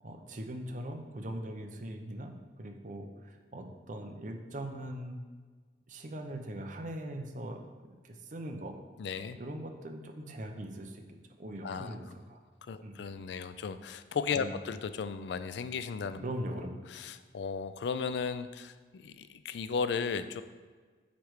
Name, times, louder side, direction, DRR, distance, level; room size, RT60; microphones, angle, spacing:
voice 1, 0.0-5.2 5.9-7.6 8.0-8.7 9.4-11.0 11.4-12.4 12.8-13.0 14.4-14.6 16.2-16.8, right 1 dB, 45° right, 4 dB, 0.7 m, -41 dB
voice 2, 9.0-9.4 11.6-12.0 12.6-16.2 16.9-20.4, left 5 dB, 75° left, 12 dB, 0.3 m, -35 dB
8.1 x 3.3 x 4.7 m, 1.5 s
head